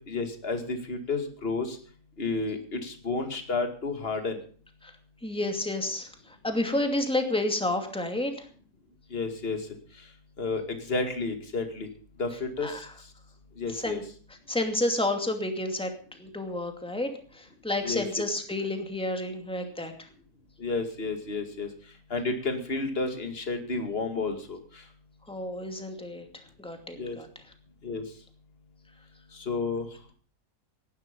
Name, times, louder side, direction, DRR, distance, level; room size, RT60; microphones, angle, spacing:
voice 1, 0.1-1.8 2.2-4.4 9.1-9.6 10.4-11.9 12.2-12.8 13.6-14.0 17.8-18.0 20.6-21.7 22.1-24.8 27.0-27.2 27.8-28.0 29.3-29.9, left 3 dB, 35° left, 6 dB, 2.5 m, -31 dB
voice 2, 5.2-8.5 12.6-12.9 13.7-14.0 14.5-15.9 16.2-20.1 25.3-26.3 26.6-27.3, left 1 dB, 5° left, 5 dB, 2.4 m, -30 dB
17.5 x 12.0 x 5.4 m, 0.43 s
omnidirectional pair, 1.7 m